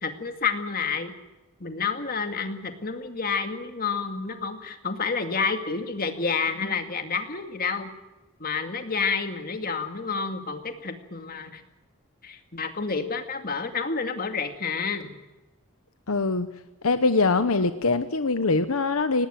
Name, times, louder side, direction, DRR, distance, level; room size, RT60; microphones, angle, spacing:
voice 1, 0.0-1.1 1.6-7.9 8.4-11.6 12.2-15.1, left 5 dB, 40° left, 6 dB, 2.2 m, -29 dB
voice 2, 16.1-16.5 16.8-19.3, left 3 dB, 75° left, 10 dB, 1.0 m, -23 dB
18.5 x 18.0 x 9.1 m, 1.1 s
head